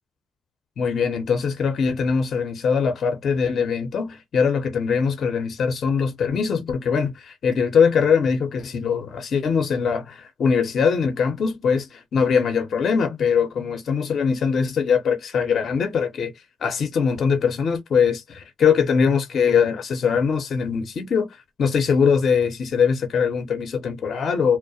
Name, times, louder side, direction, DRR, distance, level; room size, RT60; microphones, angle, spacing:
voice 1, 0.8-16.3 16.6-24.6, left 6 dB, 65° left, 0.7 m, -22 dB
2.3 x 2.1 x 2.6 m
supercardioid pair, 50°, 0 cm